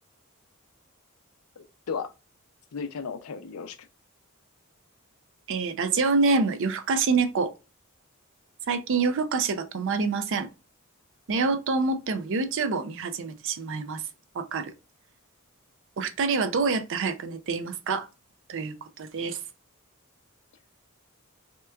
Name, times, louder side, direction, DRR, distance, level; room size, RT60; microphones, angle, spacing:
voice 1, 1.6-2.1 2.7-3.8, left 5 dB, 85° left, 0.5 m, -35 dB
voice 2, 5.5-7.5 8.7-10.5 11.3-14.0 14.3-14.7 16.0-18.1 18.5-19.4, right 4 dB, 60° right, 0.5 m, -26 dB
2.9 x 2.3 x 3.2 m
head